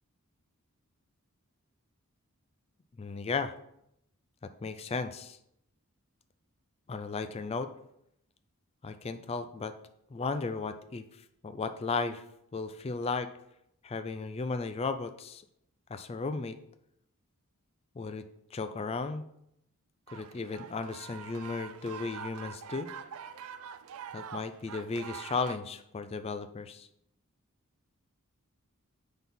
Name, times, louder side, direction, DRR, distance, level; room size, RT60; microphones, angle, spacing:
voice 1, 3.0-3.5 4.6-5.4 6.9-7.7 8.8-9.7 10.1-11.0 11.4-12.2 12.5-13.3 13.8-15.4 15.9-16.6 18.0-18.2 18.5-19.3 20.1-22.9 24.1-26.9, left 4 dB, 25° left, 10 dB, 0.3 m, -35 dB
sound 1, 20.1-25.6, right 7 dB, 70° right, 0.4 m, -44 dB
5.3 x 4.1 x 5.9 m, 0.77 s
head